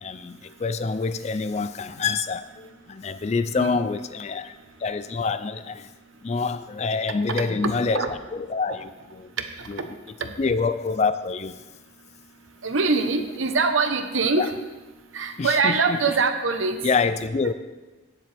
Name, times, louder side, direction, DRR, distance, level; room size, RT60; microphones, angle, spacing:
voice 1, 0.0-4.5 4.8-5.9 6.2-9.3 9.7-10.0 10.4-11.6 14.4-14.5 15.4-16.1 16.8-17.5, left 4 dB, 35° left, 12 dB, 0.3 m, -26 dB
voice 2, 3.5-3.9 7.6-8.1 12.6-14.5 15.1-16.8, right 4 dB, 75° right, 7 dB, 0.9 m, -23 dB
15.0 x 7.3 x 3.4 m, 1.2 s
head